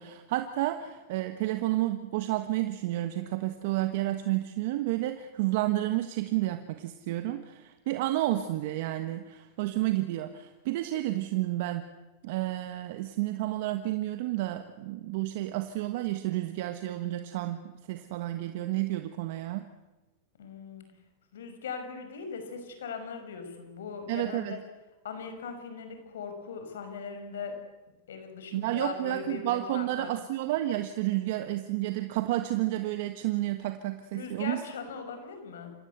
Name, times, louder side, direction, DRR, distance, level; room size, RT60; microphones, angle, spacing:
voice 1, 0.0-11.9 12.2-19.7 24.1-24.6 28.5-34.6, right 15 dB, 60° right, 8 dB, 1.4 m, -31 dB
voice 2, 20.4-20.9 21.3-24.6 25.0-27.5 28.1-30.1 34.1-35.7, left 5 dB, 85° left, 7 dB, 5.6 m, -39 dB
28.0 x 16.0 x 8.2 m, 1.1 s
supercardioid pair, 135°, 0 cm